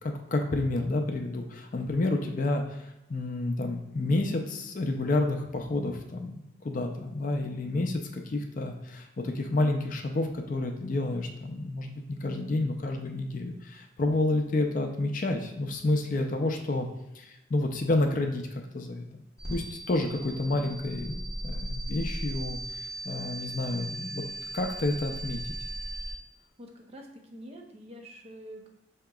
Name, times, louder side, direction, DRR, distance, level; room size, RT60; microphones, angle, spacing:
voice 1, 0.0-16.9 17.1-18.4 18.7-19.1 19.5-22.6 23.0-24.2 24.5-25.4, left 2 dB, 45° left, 4 dB, 0.4 m, -29 dB
sound 1, 19.4-26.1, right 1 dB, 20° left, 0.8 m, -37 dB
voice 2, 26.6-28.7, equal, 35° right, 2 dB, 0.6 m, -47 dB
5.8 x 2.8 x 2.3 m, 0.92 s
head